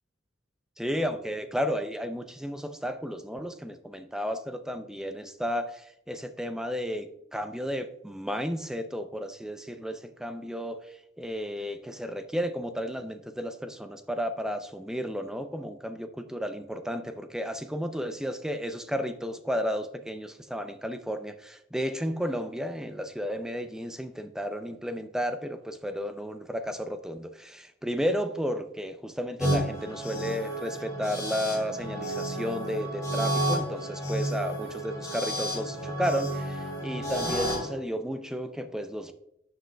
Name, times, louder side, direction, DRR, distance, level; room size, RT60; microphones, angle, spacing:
voice 1, 0.8-39.1, equal, 5° right, 8 dB, 0.4 m, -33 dB
sound 1, 29.4-37.7, right 1 dB, 15° left, 3.1 m, -31 dB
11.5 x 7.5 x 2.2 m, 0.79 s
head